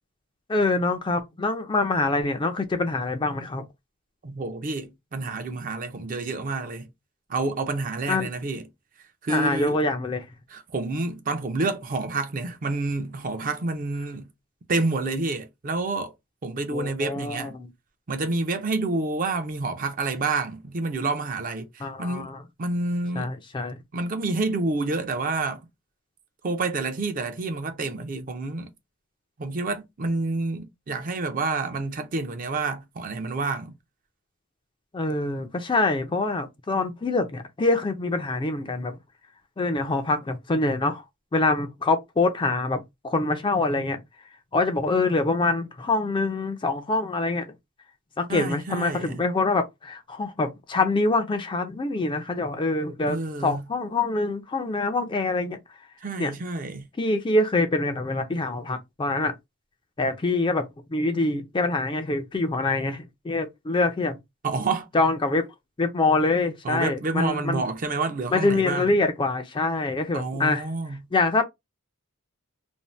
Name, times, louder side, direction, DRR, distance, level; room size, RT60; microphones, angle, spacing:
voice 1, 0.5-3.7 8.1-8.3 9.3-10.3 16.7-17.7 21.8-22.4 23.2-23.8 34.9-39.0 39.6-41.0 41.3-44.0 44.5-47.5 48.2-55.6 56.2-56.3 57.0-59.3 60.0-64.2 64.9-65.5 65.8-67.6 68.3-70.7 71.1-71.4, left 3 dB, 20° left, 0.4 m, -25 dB
voice 2, 4.2-6.9 7.3-8.7 9.2-9.8 10.5-14.3 14.7-16.1 16.4-17.5 18.1-22.3 22.6-23.3 23.9-25.7 26.4-28.7 29.4-33.7 48.3-49.2 53.1-53.7 56.0-56.9 64.4-64.9 66.6-69.0 70.1-71.0, right 3 dB, 40° right, 0.5 m, -28 dB
2.6 x 2.1 x 3.0 m
head